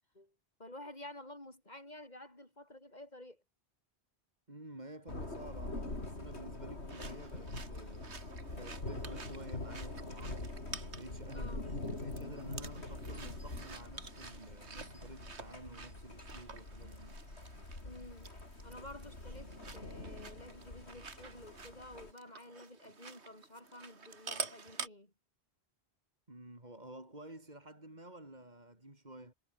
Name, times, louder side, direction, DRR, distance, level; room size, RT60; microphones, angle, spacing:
voice 1, 0.6-3.4 11.3-11.7 17.8-18.3 18.6-25.1, left 1 dB, 40° left, 5.3 m, -51 dB
voice 2, 4.5-8.1 8.5-10.5 10.9-17.2 18.7-18.8 26.3-29.3, right 1 dB, 40° right, 4.9 m, -51 dB
Thunder, 5.1-22.1, left 2 dB, 80° left, 5.0 m, -44 dB
sound 1, 6.9-24.9, right 4 dB, 85° right, 2.4 m, -49 dB
omnidirectional pair, 1.1 m